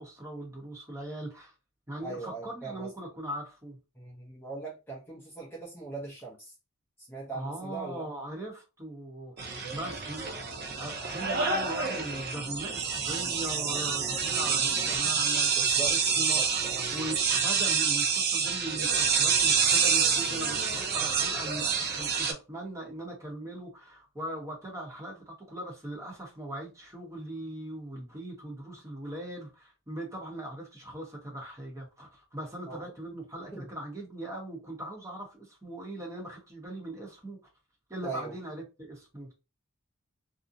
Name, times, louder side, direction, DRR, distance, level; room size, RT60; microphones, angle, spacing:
voice 1, 0.0-1.5 1.9-3.8 7.3-37.4 37.9-39.3, right 1 dB, 15° right, 0.8 m, -40 dB
voice 2, 2.0-2.9 3.9-6.5 7.0-8.1 15.6-16.9 32.7-32.9 33.5-33.7 38.0-38.3, right 4 dB, 10° left, 0.5 m, -40 dB
sound 1, 9.4-22.3, right 6 dB, 50° right, 0.5 m, -27 dB
2.5 x 2.0 x 2.6 m
head